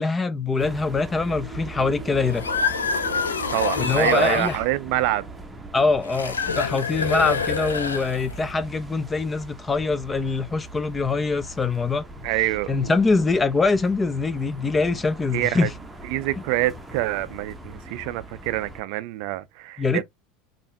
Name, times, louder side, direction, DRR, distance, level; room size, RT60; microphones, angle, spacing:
voice 1, 0.0-2.4 3.7-4.6 5.7-12.0 12.7-15.7 19.8-20.0, left 3 dB, 20° left, 0.5 m, -23 dB
sound 1, 0.6-18.8, right 2 dB, 10° right, 0.8 m, -40 dB
sound 2, 2.2-4.6 6.0-8.5, left 5 dB, 80° left, 0.5 m, -26 dB
voice 2, 3.5-5.3 12.2-12.7 15.3-15.7 16.1-20.0, right 16 dB, 55° right, 0.4 m, -26 dB
5.3 x 2.5 x 2.2 m
figure-of-eight pair, 75°, 0 cm